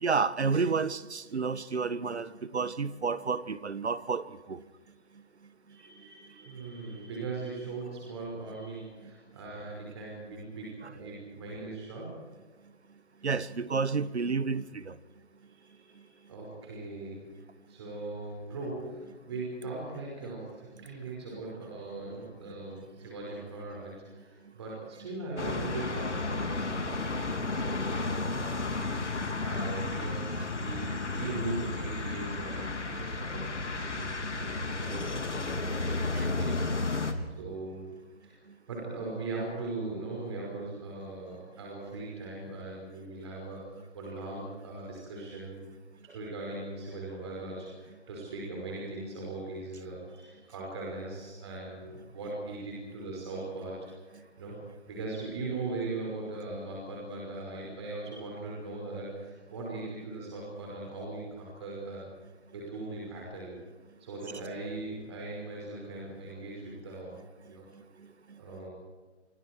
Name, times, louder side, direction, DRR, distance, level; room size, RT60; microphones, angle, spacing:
voice 1, 0.0-4.6 13.2-14.9 30.3-30.5 36.1-36.2, right 5 dB, 70° right, 1.5 m, -30 dB
voice 2, 5.7-12.2 15.5-27.2 27.5-37.9 38.2-38.4 38.7-45.6 46.1-62.1 62.5-63.6 64.0-67.2 67.5-67.7 68.4-68.7, right 2 dB, 25° right, 5.5 m, -40 dB
sound 1, 25.4-37.1, left 3 dB, 80° left, 3.6 m, -33 dB
28.5 x 25.5 x 4.7 m
hypercardioid pair, 170°, 35 cm